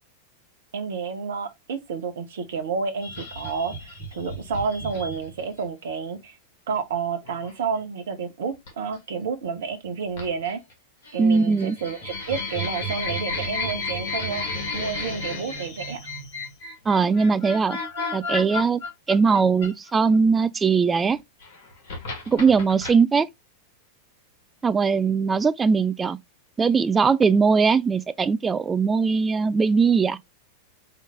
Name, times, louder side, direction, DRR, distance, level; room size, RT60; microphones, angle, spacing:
voice 1, 0.7-6.4 6.7-10.6 11.1-14.4 14.7-16.0, right 5 dB, 60° right, 1.0 m, -30 dB
sound 1, 3.0-5.6 7.2-7.5 8.7-8.9 10.2-10.7 11.0-20.1 21.2-22.9, left 2 dB, 50° left, 2.1 m, -33 dB
voice 2, 11.2-11.8 16.9-17.8 18.1-18.8 19.1-21.2 22.3-23.3 24.6-26.2 26.6-30.2, right 5 dB, 15° right, 0.4 m, -20 dB
3.9 x 3.7 x 3.4 m
figure-of-eight pair, 90°, 0 cm